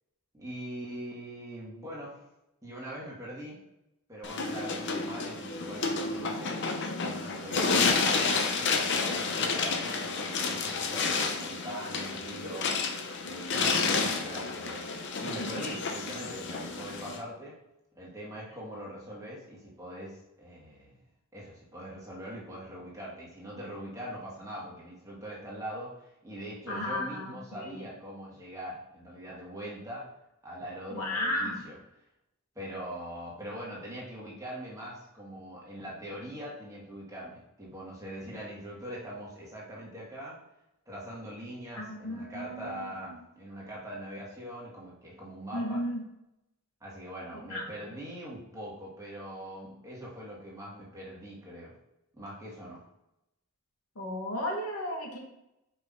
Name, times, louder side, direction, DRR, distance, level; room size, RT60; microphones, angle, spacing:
voice 1, 0.3-2.2 2.6-3.6 4.1-6.7 7.0-12.7 13.2-14.8 15.2-17.5 18.0-21.0 21.3-30.1 30.4-31.7 32.6-40.4 40.9-45.8 46.8-51.7 52.1-52.8, right 1 dB, 15° right, -6 dB, 1.9 m, -42 dB
sound 1, 4.2-17.2, left 4 dB, 50° left, 0.7 m, -30 dB
voice 2, 7.8-8.1 12.4-12.6 15.5-15.9 26.7-27.9 30.9-31.7 41.8-43.2 45.5-46.0 47.5-47.7 53.9-55.2, left 1 dB, 80° left, -1 dB, 1.7 m, -35 dB
5.7 x 5.2 x 3.7 m, 0.89 s
head